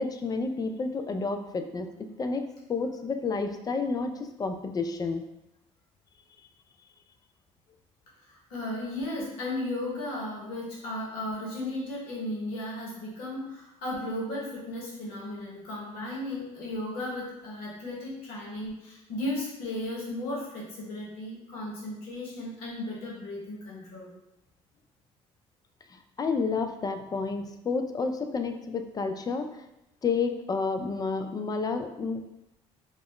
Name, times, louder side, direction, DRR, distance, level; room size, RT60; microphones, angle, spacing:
voice 1, 0.0-5.2 25.9-29.5 30.0-32.2, left 4 dB, 25° left, 7 dB, 0.3 m, -30 dB
voice 2, 8.2-24.1, left 1 dB, 75° left, -4 dB, 1.0 m, -35 dB
2.4 x 2.0 x 3.6 m, 0.89 s
hypercardioid pair, 65°, 16 cm